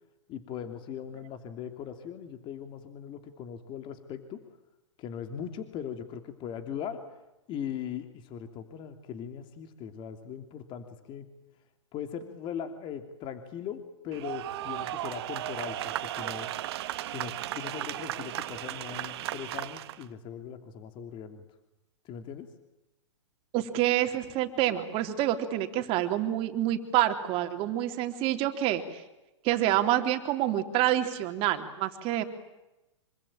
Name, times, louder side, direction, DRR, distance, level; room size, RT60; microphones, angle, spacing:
voice 1, 0.3-4.4 5.0-7.0 7.5-11.3 11.9-16.5 17.1-21.5 22.0-22.5, left 8 dB, 30° left, 8 dB, 3.0 m, -39 dB
sound 1, 14.1-20.0, right 14 dB, 55° right, 1.8 m, -35 dB
voice 2, 23.5-29.0 29.4-32.2, right 13 dB, 35° right, 7 dB, 3.4 m, -27 dB
26.5 x 25.0 x 8.9 m, 0.99 s
hypercardioid pair, 130°, 16 cm